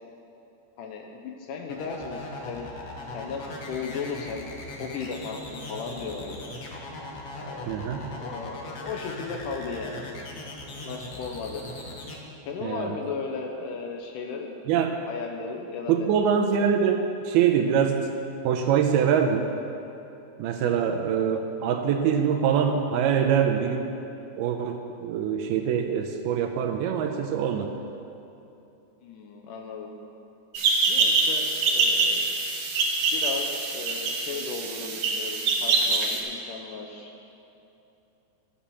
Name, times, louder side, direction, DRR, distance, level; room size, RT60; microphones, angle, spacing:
voice 1, 0.8-2.7 3.1-4.5 4.8-6.4 7.4-7.9 8.1-10.1 10.8-11.6 12.5-14.5 15.1-16.0 29.0-29.9 30.9-32.2 33.1-37.1, left 5 dB, 85° left, 2 dB, 1.9 m, -35 dB
sound 1, 1.7-12.2, left 2 dB, 65° left, 1.5 m, -39 dB
voice 2, 7.7-8.1 12.6-12.9 14.7-15.0 15.9-18.2 18.4-19.5 20.4-23.9 24.4-27.7, right 7 dB, 80° right, 4 dB, 2.4 m, -24 dB
sound 2, 30.5-36.2, right 3 dB, 65° right, 2.5 m, -25 dB
12.0 x 8.7 x 7.0 m, 2.9 s
omnidirectional pair, 4.9 m